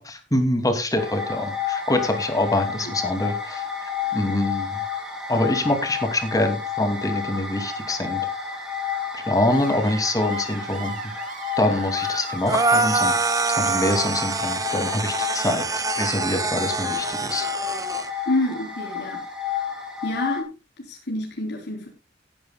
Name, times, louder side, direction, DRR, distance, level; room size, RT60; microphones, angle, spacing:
voice 1, 0.0-3.6 4.1-4.8 5.3-8.2 9.1-11.3 11.6-17.5, left 1 dB, 20° left, 7 dB, 2.5 m, -25 dB
sound 1, 1.0-20.4, left 7 dB, 5° right, 4.0 m, -31 dB
Screech, 9.5-15.6, right 6 dB, 45° right, 2.4 m, -40 dB
sound 2, 12.5-18.1, right 4 dB, 20° right, 0.6 m, -25 dB
voice 2, 18.2-19.2 20.0-20.5 20.8-21.9, left 1 dB, 65° left, 0 dB, 3.5 m, -27 dB
18.5 x 10.5 x 2.3 m, 0.27 s
head